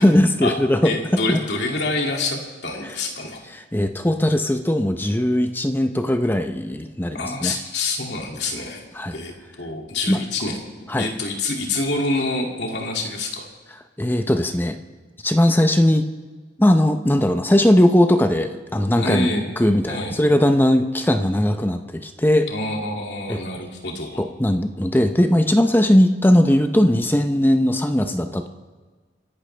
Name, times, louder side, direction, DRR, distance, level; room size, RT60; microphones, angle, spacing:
voice 1, 0.0-1.4 2.8-3.0 3.5-7.6 8.9-9.1 10.1-10.2 10.9-11.1 14.0-14.8 15.2-16.1 16.6-19.3 19.6-22.5 23.3-23.4 24.2-28.5, left 1 dB, 10° left, 7 dB, 0.6 m, -19 dB
voice 2, 0.8-3.4 7.1-8.8 9.1-10.6 10.9-13.5 19.0-19.5 19.9-20.1 22.5-24.2, left 2 dB, 70° left, 1 dB, 2.4 m, -26 dB
26.5 x 11.5 x 3.3 m, 1.4 s
head